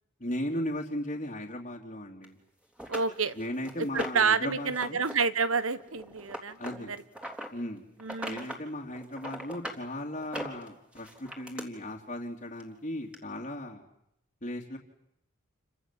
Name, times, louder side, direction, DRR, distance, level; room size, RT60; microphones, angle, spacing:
voice 1, 0.2-2.4 3.4-5.0 6.6-6.9 7.5-7.8 8.3-13.8 14.4-14.8, left 1 dB, 35° left, -4 dB, 2.8 m, -36 dB
sound 1, 2.2-2.3 2.8-4.3 4.7-5.1 5.4-7.5 8.0-8.6 8.9-9.8 10.2-11.6 12.6-12.7 13.1-13.2, equal, 5° right, 3.5 m, -39 dB
voice 2, 2.9-3.4 3.8-7.0 8.0-8.5, right 5 dB, 85° right, 14 dB, 1.4 m, -29 dB
29.5 x 25.5 x 7.6 m, 0.79 s
head